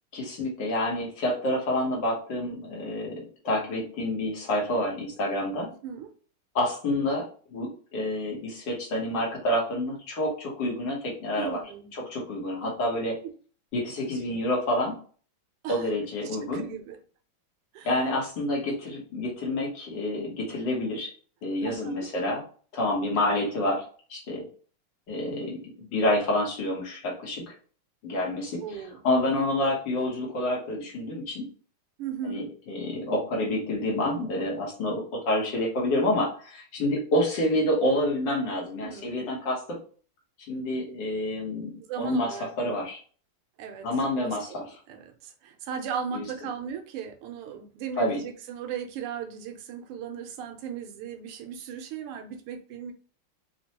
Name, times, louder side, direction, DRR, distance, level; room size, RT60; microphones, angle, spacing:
voice 1, 0.1-5.7 6.5-7.2 7.5-11.6 11.9-13.1 13.7-15.0 15.7-16.6 17.8-21.1 21.4-22.4 22.7-23.8 24.1-24.4 25.1-27.4 28.0-28.6 29.0-31.5 32.2-39.6 40.5-43.0 43.8-44.6 46.1-46.2 48.0-48.2, left 1 dB, 60° left, -2 dB, 1.7 m, -28 dB
voice 2, 5.7-6.1 11.4-11.9 12.6-12.7 15.6-15.9 16.2-17.0 17.7-17.9 21.6-22.1 23.2-23.5 28.6-29.0 32.0-32.5 38.8-39.2 41.9-42.8 43.6-43.9 44.2-52.9, right 7 dB, 90° right, 5 dB, 1.6 m, -37 dB
4.2 x 2.2 x 2.8 m, 0.42 s
omnidirectional pair, 2.4 m